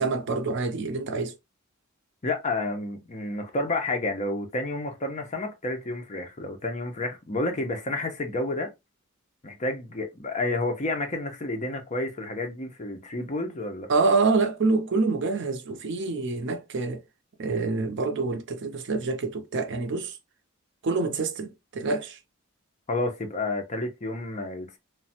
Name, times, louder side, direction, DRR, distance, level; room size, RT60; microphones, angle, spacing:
voice 1, 0.0-1.3 13.9-17.0 17.4-20.2 20.8-22.2, right 3 dB, 55° right, 0.5 m, -26 dB
voice 2, 2.2-8.7 9.4-13.9 22.9-24.8, left 2 dB, 30° left, 0.6 m, -30 dB
3.1 x 2.1 x 2.8 m
head